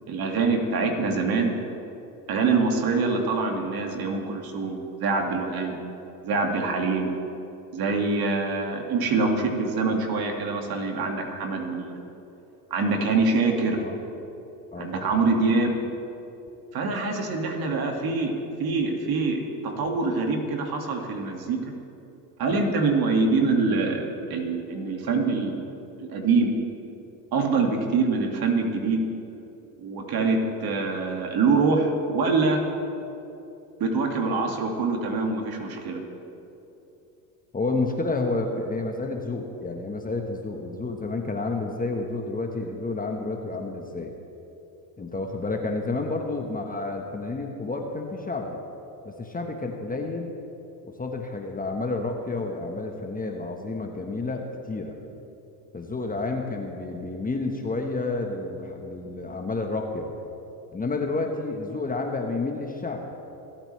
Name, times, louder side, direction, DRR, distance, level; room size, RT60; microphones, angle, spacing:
voice 1, 0.1-1.6 2.3-5.8 6.2-7.1 7.7-11.9 12.7-13.8 14.8-15.8 16.7-18.3 18.6-21.6 22.4-24.0 24.3-25.7 26.0-26.6 27.3-29.0 29.8-32.6 33.8-36.0, right 4 dB, 50° right, 2 dB, 2.3 m, -25 dB
voice 2, 14.7-15.1 37.5-44.1 45.0-48.6 49.0-50.3 50.8-54.9 55.7-60.1 60.7-63.1, left 3 dB, 15° left, 2 dB, 1.3 m, -30 dB
26.5 x 8.9 x 3.3 m, 2.9 s
hypercardioid pair, 85°, 48 cm